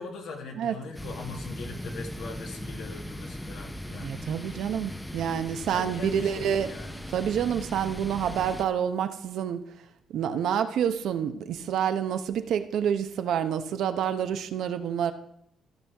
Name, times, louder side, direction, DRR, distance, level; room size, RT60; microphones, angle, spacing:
voice 1, 0.0-4.1 5.7-7.0, left 4 dB, 75° left, 3 dB, 1.7 m, -40 dB
sound 1, 0.9-8.6, left 1 dB, 5° left, 0.7 m, -39 dB
voice 2, 3.9-6.7 7.1-9.6 10.1-15.1, right 8 dB, 75° right, 9 dB, 0.7 m, -28 dB
14.0 x 5.7 x 3.4 m, 0.74 s
cardioid pair, 90°, 0 cm